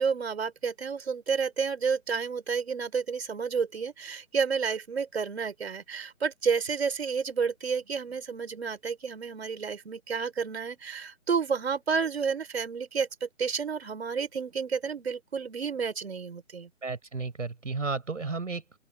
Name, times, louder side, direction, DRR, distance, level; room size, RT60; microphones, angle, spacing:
voice 1, 0.0-16.7, right 5 dB, 55° right, 6.3 m, -30 dB
voice 2, 16.8-18.8, right 4 dB, 70° right, 6.8 m, -33 dB
open air
figure-of-eight pair, 150°, 39 cm